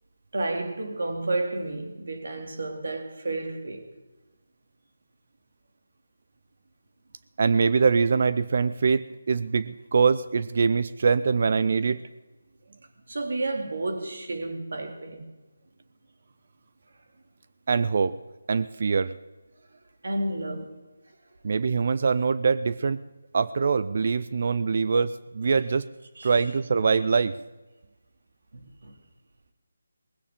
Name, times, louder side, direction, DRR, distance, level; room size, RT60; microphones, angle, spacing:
voice 1, 0.3-3.9 11.8-11.9 13.1-15.3 20.0-20.8 26.2-26.4 28.5-28.9, right 2 dB, 65° right, 2.5 m, -31 dB
voice 2, 7.4-12.0 17.7-18.2 18.5-19.1 21.4-23.0 23.3-25.9 26.2-27.4, right 5 dB, 50° right, 0.4 m, -23 dB
20.0 x 16.0 x 3.7 m
figure-of-eight pair, 160°, 0 cm